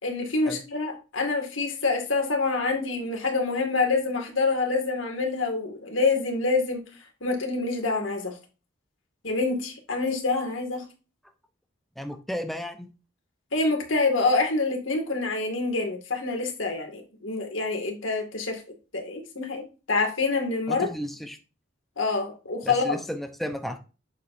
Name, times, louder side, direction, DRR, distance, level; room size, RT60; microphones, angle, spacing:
voice 1, 0.0-6.8 7.2-8.4 9.2-10.9 13.5-18.6 18.9-20.9 22.0-23.0, left 3 dB, 90° left, 3 dB, 2.3 m, -26 dB
voice 2, 12.0-12.9 20.7-21.4 22.6-23.8, equal, ahead, 5 dB, 0.8 m, -33 dB
8.2 x 7.4 x 2.7 m, 0.32 s
head